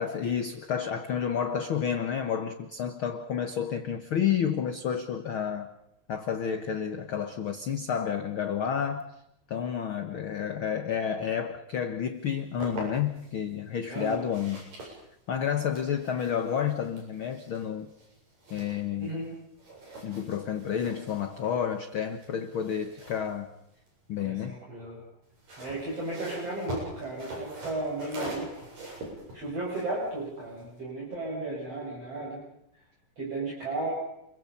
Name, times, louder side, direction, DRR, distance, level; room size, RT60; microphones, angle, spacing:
voice 1, 0.0-5.7 6.1-9.1 9.5-15.0 15.3-17.9 18.5-19.2 20.0-23.5 24.1-24.6, left 8 dB, 55° left, 8 dB, 1.5 m, -30 dB
sound 1, 12.2-13.3 13.9-19.3 19.6-24.2 25.2-30.8, right 2 dB, 75° right, 9.3 m, -44 dB
voice 2, 13.9-14.2 19.0-19.3 24.2-25.0 25.6-28.6 29.3-32.4 33.2-33.9, right 2 dB, 45° right, -4 dB, 7.4 m, -34 dB
29.0 x 23.0 x 5.5 m, 0.80 s
omnidirectional pair, 3.9 m